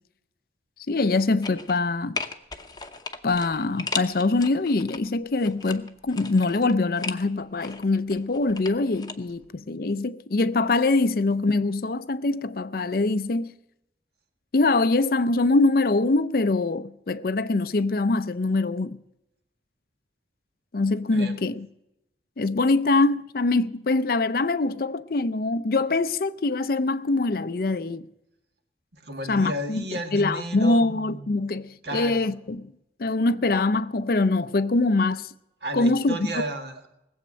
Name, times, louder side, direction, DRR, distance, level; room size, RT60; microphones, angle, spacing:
voice 1, 0.9-2.2 3.2-13.5 14.5-19.0 20.7-21.7 22.4-28.1 29.3-29.9 30.1-32.7 33.0-35.3 35.7-36.5, left 3 dB, 50° left, 0.5 m, -23 dB
sound 1, 1.4-1.9 2.2-5.0 5.4-7.2 7.6-9.1 9.4-9.5, left 4 dB, 20° left, 0.8 m, -35 dB
voice 2, 21.1-21.5 28.9-31.3 31.8-32.3 35.6-36.9, right 1 dB, 60° right, 1.8 m, -33 dB
19.5 x 7.9 x 6.3 m
head